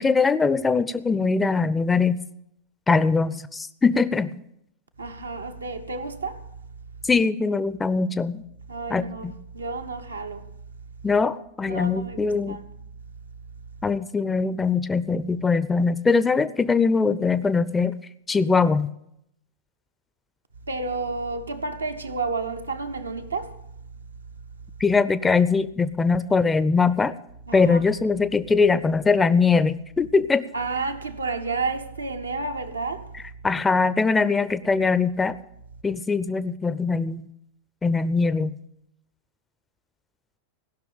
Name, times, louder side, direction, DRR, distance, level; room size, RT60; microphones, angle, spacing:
voice 1, 0.0-2.2 2.9-4.3 7.1-8.4 8.9-9.3 11.0-12.6 13.8-18.0 18.3-18.9 24.8-27.1 27.5-30.5 33.4-35.4 35.8-37.3 37.8-38.6, left 4 dB, 15° left, 0.6 m, -22 dB
voice 2, 5.0-6.6 8.7-10.6 11.6-12.6 20.7-23.7 27.5-27.9 30.5-33.3, right 3 dB, 80° right, 0.9 m, -31 dB
16.5 x 6.1 x 8.8 m
figure-of-eight pair, 90°, 0 cm